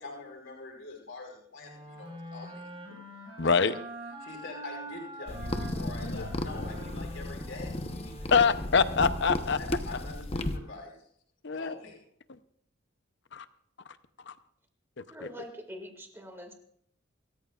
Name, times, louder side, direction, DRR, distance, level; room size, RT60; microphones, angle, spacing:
voice 1, 0.0-3.0 4.2-8.5 9.6-11.0 11.5-12.0, left 3 dB, 80° left, -1 dB, 5.2 m, -44 dB
sound 1, 1.6-9.1, right 1 dB, 30° right, 4.6 m, -45 dB
voice 2, 3.4-3.7 6.0-6.2 8.3-9.6 11.4-11.7 13.3-13.4 14.3-14.4, left 5 dB, 60° left, 12 dB, 0.8 m, -24 dB
sound 2, 5.3-10.6, left 1 dB, 30° left, 0.9 m, -35 dB
voice 3, 15.1-16.5, equal, 10° right, 3 dB, 2.3 m, -44 dB
27.0 x 14.0 x 2.5 m, 0.67 s
head